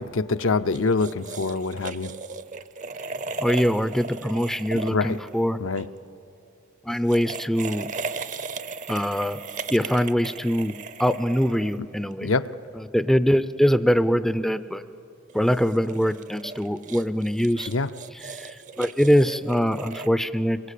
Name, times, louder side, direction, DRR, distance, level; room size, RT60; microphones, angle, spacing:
voice 1, 0.0-2.1 4.8-5.2 5.6-5.9 12.2-12.5 17.7-17.9, left 3 dB, 65° left, 10 dB, 0.7 m, -25 dB
sound 1, 0.7-5.9 6.9-12.1 15.3-20.1, right 4 dB, 35° right, 0.7 m, -37 dB
voice 2, 3.4-5.6 6.9-7.9 8.9-9.4 9.7-10.7 11.0-12.3 12.8-14.8 15.3-17.7 18.3-20.6, equal, ahead, 12 dB, 0.5 m, -23 dB
27.0 x 22.5 x 8.4 m, 2.8 s
head